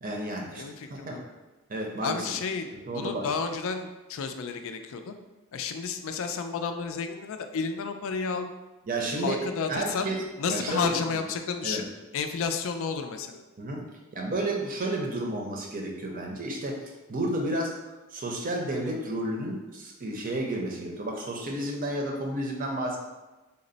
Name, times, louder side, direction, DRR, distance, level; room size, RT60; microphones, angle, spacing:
voice 1, 0.0-0.6 0.9-1.2 1.7-2.3 2.8-3.3 8.9-9.4 9.7-10.2 10.5-11.2 11.6-11.8 13.6-13.8 14.1-17.8 18.1-23.0, right 1 dB, 40° right, 0 dB, 0.6 m, -31 dB
voice 2, 0.5-1.2 2.0-5.1 5.5-8.5 9.2-10.1 10.4-11.9 12.1-13.4, left 5 dB, 65° left, 7 dB, 0.4 m, -31 dB
4.2 x 2.0 x 3.8 m, 1.1 s
head